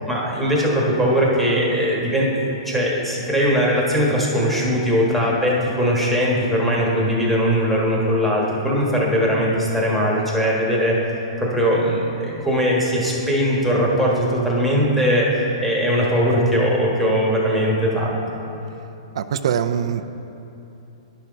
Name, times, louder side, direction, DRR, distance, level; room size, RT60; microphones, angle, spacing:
voice 1, 0.1-11.0 11.4-18.2, equal, ahead, -5 dB, 1.5 m, -20 dB
voice 2, 19.1-20.1, right 8 dB, 70° right, 10 dB, 0.4 m, -23 dB
11.0 x 5.8 x 4.0 m, 2.8 s
hypercardioid pair, 145°, 3 cm